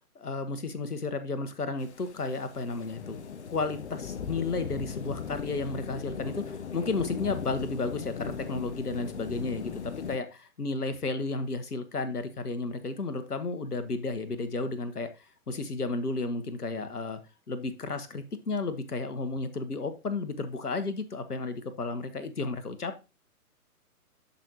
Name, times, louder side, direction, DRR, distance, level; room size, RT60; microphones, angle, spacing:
voice 1, 0.1-3.2 3.5-15.1 15.5-17.2 17.5-23.0, left 3 dB, 80° left, 10 dB, 1.3 m, -33 dB
sound 1, 1.8-10.2, left 7 dB, 50° left, 1.0 m, -39 dB
11.5 x 5.3 x 2.9 m, 0.28 s
figure-of-eight pair, 130°, 45 cm